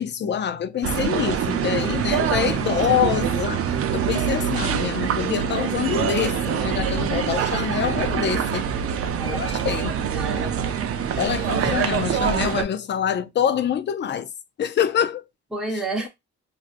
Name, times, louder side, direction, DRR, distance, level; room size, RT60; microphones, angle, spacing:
voice 1, 0.0-3.6 3.9-8.7 9.2-10.0 11.2-14.3 14.6-15.2, left 9 dB, 40° left, 0.4 m, -25 dB
sound 1, 0.8-12.6, right 7 dB, 50° right, 0.5 m, -24 dB
voice 2, 2.3-3.0 9.2-10.6 15.5-16.1, right 2 dB, ahead, 0.9 m, -32 dB
3.0 x 2.6 x 2.5 m
cardioid pair, 90°, 30 cm